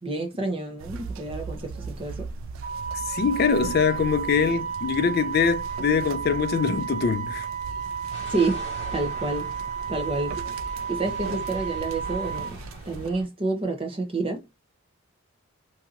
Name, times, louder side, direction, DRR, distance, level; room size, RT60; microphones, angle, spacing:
voice 1, 0.0-2.3 3.6-4.0 8.2-8.7 8.9-9.5 9.9-10.4 10.9-12.6 12.9-14.4, right 3 dB, 25° right, 0.7 m, -29 dB
sound 1, 0.8-13.1, right 4 dB, 65° right, 0.3 m, -39 dB
Wind instrument woodwind instrument, 2.6-12.5, right 7 dB, 50° right, 1.4 m, -33 dB
voice 2, 3.1-7.5, left 6 dB, 45° left, 0.3 m, -23 dB
sound 2, 8.1-13.2, equal, 30° left, 1.2 m, -42 dB
2.7 x 2.7 x 2.4 m
head